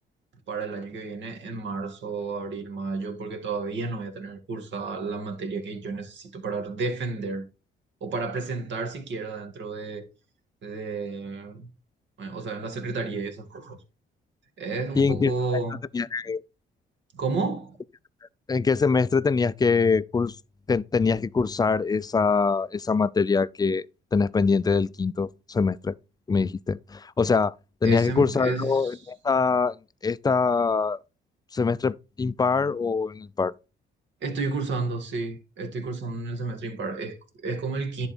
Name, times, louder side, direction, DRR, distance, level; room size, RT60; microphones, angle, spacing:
voice 1, 0.5-7.4 8.0-10.0 10.6-11.7 12.2-13.8 14.6-15.8 17.1-17.8 27.8-29.0 34.2-38.1, right 3 dB, 65° right, 2.0 m, -31 dB
voice 2, 15.0-15.3 15.9-16.4 18.5-20.4 20.7-23.9 24.1-26.0 26.3-27.5 27.8-29.7 30.0-31.0 31.5-33.5, left 4 dB, 20° left, 0.4 m, -23 dB
10.5 x 4.0 x 4.3 m
cardioid pair, 90°, 20 cm